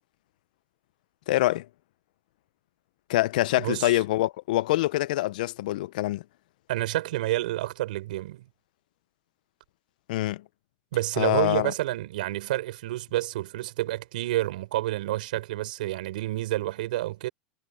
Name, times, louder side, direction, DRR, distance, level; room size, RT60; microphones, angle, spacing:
voice 1, 1.3-1.7 3.1-6.2 10.1-10.4 11.2-11.7, left 16 dB, 80° left, 0.5 m, -25 dB
voice 2, 3.6-3.9 6.7-8.5 10.9-17.3, right 16 dB, 85° right, 4.9 m, -29 dB
supercardioid pair, 130°, 4 cm